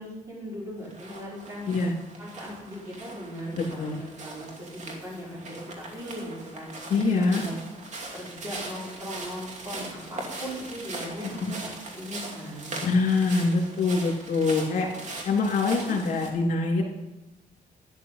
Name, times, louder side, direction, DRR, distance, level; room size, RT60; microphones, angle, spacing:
voice 1, 0.0-1.7 2.2-7.6 8.1-12.8 15.8-16.0, equal, 20° right, -4 dB, 5.3 m, -39 dB
sound 1, 0.8-16.3, right 2 dB, 55° right, 2.6 m, -40 dB
voice 2, 6.9-7.4 11.4-11.6 12.8-16.8, left 3 dB, 65° left, 0 dB, 3.0 m, -24 dB
12.0 x 11.0 x 5.8 m, 0.97 s
cardioid pair, 120°, 15 cm